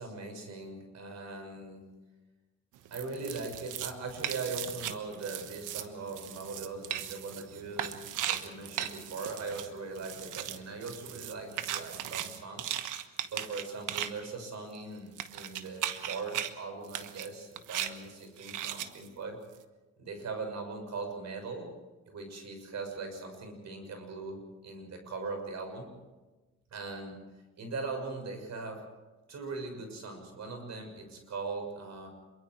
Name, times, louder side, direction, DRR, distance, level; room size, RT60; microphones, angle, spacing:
voice 1, 0.0-1.9 2.9-8.0 8.2-12.7 13.3-19.4 20.0-21.7 22.0-25.9 26.7-27.2 27.6-28.8 29.3-32.1, right 3 dB, 65° right, 5 dB, 6.6 m, -40 dB
sound 1, 2.8-14.1 14.7-14.8 15.2-16.5 16.8-17.3 17.6-17.9 18.4-19.1, right 11 dB, 90° right, 1.3 m, -38 dB
27.0 x 23.5 x 4.8 m, 1.2 s
cardioid pair, 90°, 30 cm